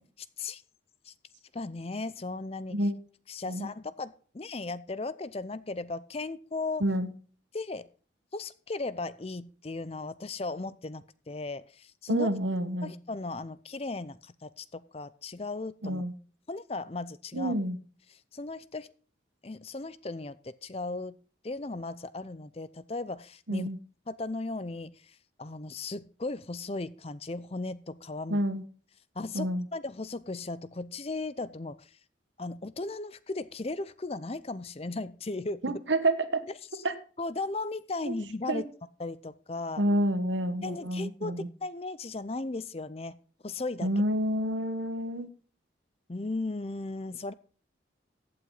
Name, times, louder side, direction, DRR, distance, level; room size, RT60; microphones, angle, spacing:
voice 1, 1.5-2.9 3.3-6.8 7.5-7.9 8.3-12.3 12.8-16.0 16.5-17.5 18.3-18.9 19.4-21.2 21.4-23.7 24.1-24.9 25.4-28.4 29.2-31.8 32.4-35.8 37.2-38.6 39.0-39.8 40.6-43.2 43.4-43.9 46.1-47.3, left 3 dB, 30° left, 16 dB, 0.6 m, -36 dB
voice 2, 12.1-12.9 15.8-16.1 17.3-17.8 23.5-23.8 28.3-28.6 29.3-29.7 35.6-36.4 36.8-36.9 38.1-38.2 38.5-38.6 39.8-41.5 43.8-45.3, right 1 dB, 75° right, 11 dB, 1.5 m, -28 dB
15.0 x 8.7 x 4.0 m, 0.42 s
head